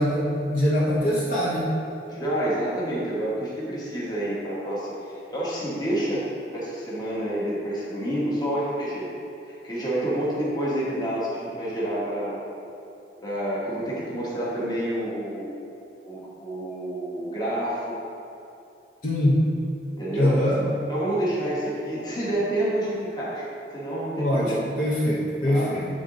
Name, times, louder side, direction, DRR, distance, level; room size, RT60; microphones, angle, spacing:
voice 1, 0.0-1.7 19.0-19.4 20.1-20.6 24.2-25.9, left 1 dB, 50° left, -7 dB, 1.0 m, -23 dB
voice 2, 2.1-6.2 6.5-9.1 9.4-12.4 13.2-15.5 16.0-18.0 20.0-20.4 20.9-23.5 23.7-24.6 25.5-25.7, right 1 dB, 25° left, -7 dB, 1.3 m, -28 dB
8.8 x 3.8 x 3.8 m, 2.7 s
head